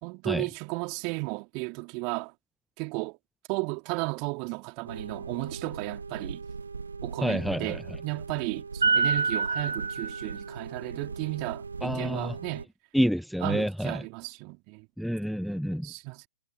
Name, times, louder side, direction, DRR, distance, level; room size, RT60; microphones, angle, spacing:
voice 1, 0.0-2.3 2.8-3.2 3.5-6.4 7.0-12.7 13.4-14.9 15.8-16.3, right 33 dB, 35° right, 3.0 m, -34 dB
sound 1, 4.9-12.6, right 4 dB, 70° right, 1.5 m, -32 dB
voice 2, 7.2-7.8 11.8-12.3 12.9-14.0 15.0-15.9, equal, ahead, 0.6 m, -28 dB
figure-of-eight pair, 115°, 0 cm